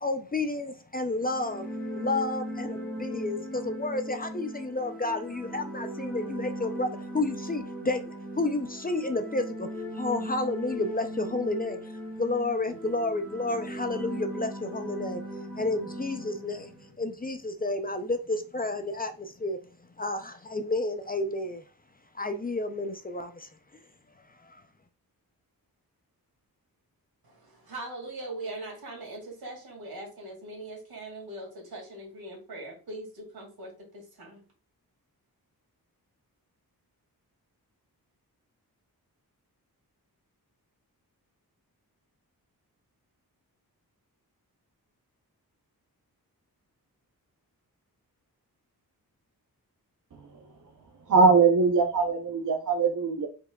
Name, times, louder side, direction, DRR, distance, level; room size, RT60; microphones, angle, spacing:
voice 1, 0.0-6.9 7.1-9.7 9.9-11.8 12.2-15.2 15.5-16.7 17.0-19.6 20.0-21.6 22.1-23.5 24.5-24.6, left 2 dB, 25° left, 7 dB, 0.4 m, -31 dB
sound 1, 1.2-16.9, equal, 5° left, 1.3 m, -38 dB
voice 2, 27.2-34.4, right 2 dB, 80° right, -1 dB, 2.2 m, -41 dB
voice 3, 51.1-53.3, right 4 dB, 55° right, 3 dB, 0.6 m, -21 dB
4.6 x 4.4 x 2.3 m, 0.34 s
wide cardioid pair, 100°, 37 cm